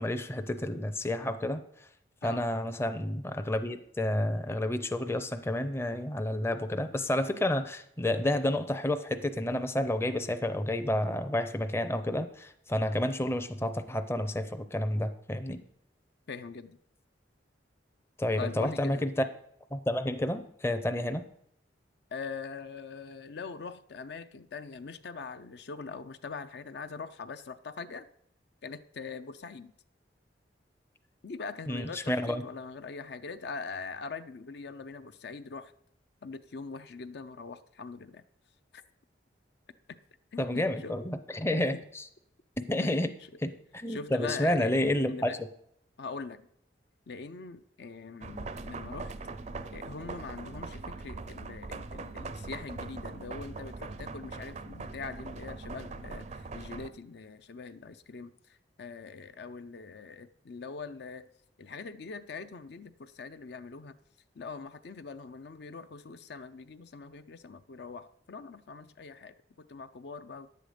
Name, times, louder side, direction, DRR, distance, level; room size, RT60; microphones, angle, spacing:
voice 1, 0.0-1.6 2.2-15.6 18.2-19.2 19.7-21.2 31.7-32.4 40.4-42.0 42.6-43.1 43.4-45.5, left 1 dB, 15° left, 9 dB, 0.5 m, -30 dB
voice 2, 16.3-16.8 18.4-19.1 22.1-28.1 28.6-29.7 31.2-35.7 36.2-38.2 38.7-38.8 39.9-40.0 40.3-41.0 41.6-41.8 42.8-43.1 43.9-44.8 45.1-45.4 46.0-46.5 47.1-49.1 49.7-58.3 58.8-61.3 61.6-63.9 64.4-70.5, left 4 dB, 65° left, 10 dB, 0.5 m, -42 dB
sound 1, 48.2-56.9, right 3 dB, 40° right, 0.5 m, -41 dB
10.5 x 7.8 x 5.0 m, 0.71 s
head